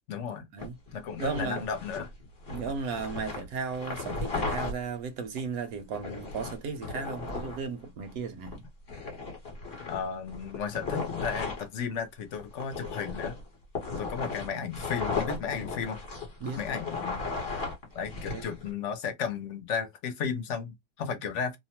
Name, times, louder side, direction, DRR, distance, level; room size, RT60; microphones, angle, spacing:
voice 1, 0.1-0.5 0.9-2.1 9.9-13.3 14.0-16.0 16.6-17.2 17.9-21.6, left 6 dB, 65° left, 0.7 m, -34 dB
sound 1, 0.6-4.7 5.4-5.5 5.9-7.6 8.1-8.2 8.5-8.6 8.9-11.6 12.4-18.7, left 4 dB, 40° left, 1.1 m, -36 dB
voice 2, 1.2-1.6 2.5-8.6 14.4-14.7 16.4-16.6 18.3-18.4, right 5 dB, 70° right, 1.0 m, -35 dB
2.7 x 2.1 x 2.8 m
omnidirectional pair, 1.7 m